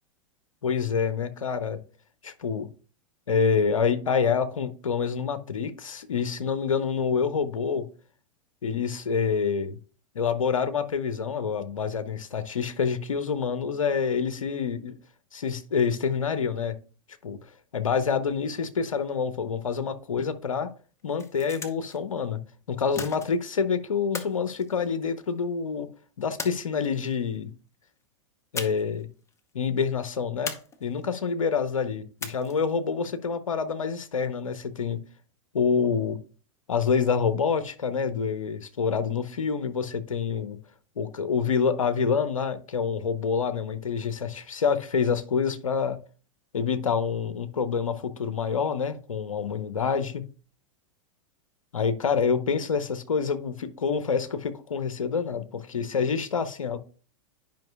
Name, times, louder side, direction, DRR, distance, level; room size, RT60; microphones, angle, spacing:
voice 1, 0.6-1.8 2.2-2.7 3.3-7.9 8.6-9.8 10.1-14.9 15.3-16.7 17.2-17.4 17.7-20.7 21.0-22.4 22.7-25.9 26.2-27.5 28.5-29.1 29.5-30.6 30.8-35.0 35.5-36.2 36.7-40.6 41.0-46.0 46.5-50.3 51.7-56.8, left 6 dB, 80° left, 0.7 m, -27 dB
sound 1, 21.0-22.0 23.0-23.6 24.1-25.4 26.4-27.2 28.6-29.0 29.3-29.4 30.5-31.2 32.2-32.8, left 4 dB, 15° left, 0.9 m, -38 dB
10.5 x 5.2 x 2.2 m
figure-of-eight pair, 95°, 17 cm